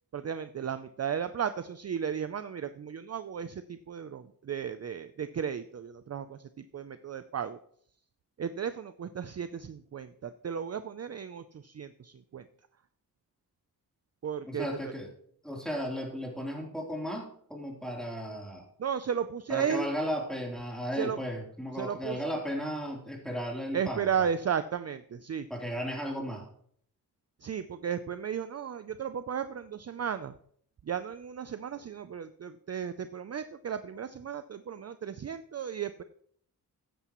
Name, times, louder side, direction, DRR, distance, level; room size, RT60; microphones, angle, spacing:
voice 1, 0.1-7.6 8.4-12.5 14.2-14.9 18.8-19.9 21.0-21.2 21.8-22.2 23.7-25.5 27.4-30.3 30.8-36.0, right 8 dB, 40° right, 11 dB, 0.5 m, -34 dB
voice 2, 14.5-15.1 15.4-18.6 19.5-24.1 25.5-26.5, equal, ahead, -1 dB, 3.4 m, -35 dB
13.5 x 9.9 x 3.1 m, 0.63 s
wide cardioid pair, 90°, 38 cm